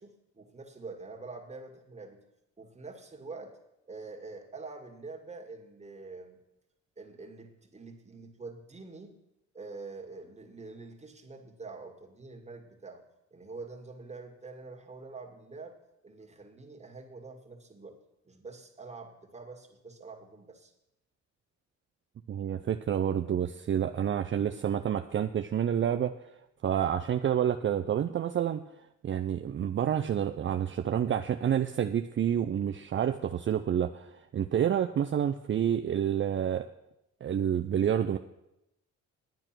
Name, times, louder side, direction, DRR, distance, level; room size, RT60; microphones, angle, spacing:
voice 1, 0.0-2.2 2.6-3.5 3.9-6.4 7.0-9.2 9.5-13.0 13.3-15.8 16.0-18.0 18.3-20.7, right 3 dB, 20° right, 3 dB, 2.0 m, -46 dB
voice 2, 22.3-26.1 26.6-28.6 29.0-36.7 37.2-38.2, right 9 dB, 40° right, 7 dB, 0.5 m, -28 dB
10.5 x 9.0 x 6.1 m, 0.87 s
cardioid pair, 90°, 30 cm